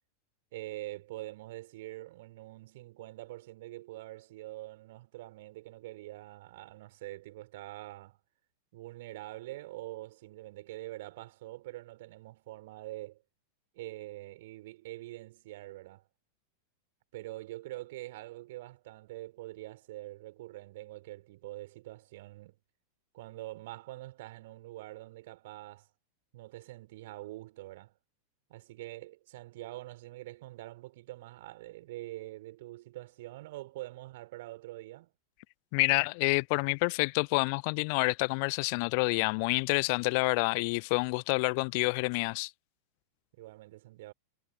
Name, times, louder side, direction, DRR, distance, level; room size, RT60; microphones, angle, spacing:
voice 1, 0.5-8.2 8.7-13.2 13.7-16.1 17.1-22.5 23.1-25.9 26.3-27.9 28.5-35.1 43.3-44.1, right 17 dB, 55° right, 4.2 m, -45 dB
voice 2, 35.7-42.5, left 33 dB, 45° left, 0.7 m, -28 dB
figure-of-eight pair, 90°, 0 cm